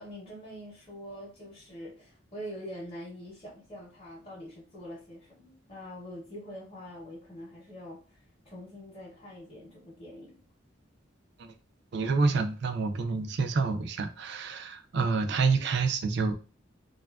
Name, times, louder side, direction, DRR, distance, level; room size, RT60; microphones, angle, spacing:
voice 1, 0.0-10.4, equal, 30° left, 0.7 m, -44 dB
voice 2, 11.9-16.3, right 4 dB, 60° right, 0.4 m, -28 dB
2.6 x 2.3 x 2.3 m
head